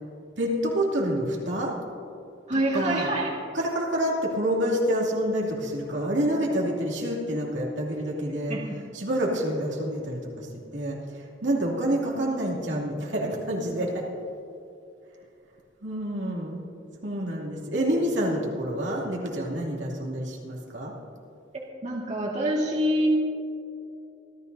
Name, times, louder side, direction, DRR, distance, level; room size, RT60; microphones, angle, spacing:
voice 1, 0.4-1.7 2.5-3.1 3.5-8.6 8.9-14.0 15.8-16.6 17.0-20.9, equal, 75° right, -3 dB, 2.7 m, -28 dB
voice 2, 2.5-3.3 6.2-6.5 8.5-8.6 21.8-23.1, right 1 dB, 40° right, -3 dB, 1.9 m, -26 dB
27.0 x 13.5 x 2.7 m, 2.6 s
head